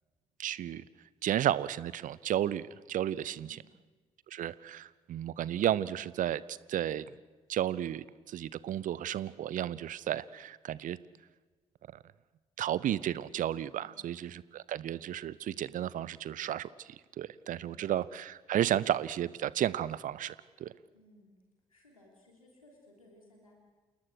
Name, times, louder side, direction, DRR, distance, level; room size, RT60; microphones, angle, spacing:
voice 1, 0.4-0.8 1.2-3.6 4.3-7.0 7.5-11.0 11.9-12.0 12.6-20.7, right 11 dB, 50° right, 20 dB, 0.8 m, -33 dB
voice 2, 3.4-3.7 13.7-14.2 17.5-18.1 20.9-21.3 21.7-23.5, left 1 dB, 85° left, 0 dB, 3.3 m, -61 dB
28.5 x 19.5 x 6.4 m, 1.3 s
figure-of-eight pair, 40°, 17 cm